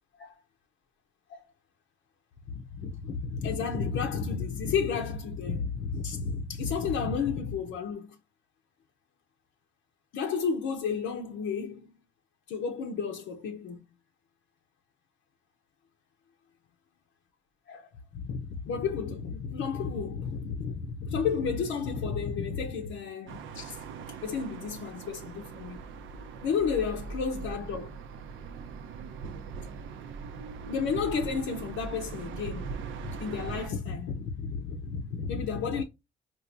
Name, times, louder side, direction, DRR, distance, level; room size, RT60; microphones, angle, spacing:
voice 1, 2.5-8.2 10.1-11.9 12.5-13.8 17.7-23.8 24.2-25.8 26.4-28.0 30.7-32.8 33.2-35.8, left 6 dB, 85° left, 0.7 m, -32 dB
sound 1, 23.3-33.7, right 5 dB, 80° right, 0.5 m, -40 dB
4.5 x 2.5 x 2.5 m
cardioid pair, 90°, 20 cm